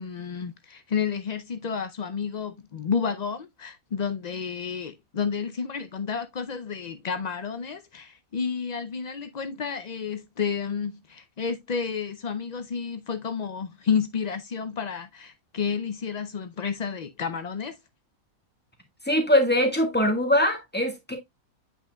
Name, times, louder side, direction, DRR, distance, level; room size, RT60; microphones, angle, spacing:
voice 1, 0.0-17.7, left 6 dB, 75° left, 0.3 m, -31 dB
voice 2, 19.1-21.2, left 1 dB, 5° left, 1.6 m, -22 dB
8.4 x 5.6 x 2.2 m
omnidirectional pair, 1.5 m